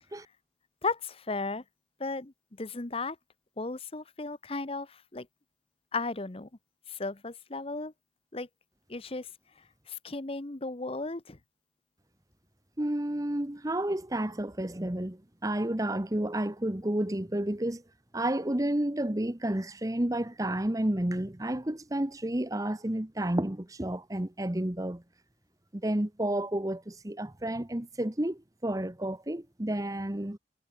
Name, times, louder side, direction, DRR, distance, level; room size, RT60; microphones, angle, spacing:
voice 1, 0.8-1.6 2.0-2.3 2.6-3.2 3.6-5.3 5.9-6.5 6.9-7.9 8.3-8.5 8.9-9.3 9.9-11.4, left 3 dB, 30° left, 0.9 m, -35 dB
voice 2, 12.8-17.8 18.1-25.0 25.7-30.4, right 1 dB, 20° right, 1.0 m, -31 dB
head